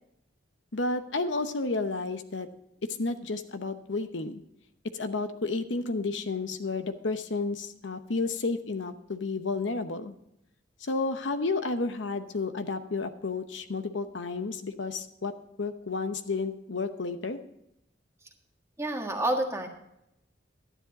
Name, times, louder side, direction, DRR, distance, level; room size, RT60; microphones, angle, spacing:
voice 1, 0.7-2.5 3.0-4.4 4.9-10.1 10.8-15.3 15.6-17.4, left 3 dB, 75° left, 9 dB, 0.9 m, -31 dB
voice 2, 18.8-19.7, right 1 dB, 15° right, 2 dB, 1.7 m, -28 dB
12.0 x 10.5 x 4.0 m, 0.80 s
head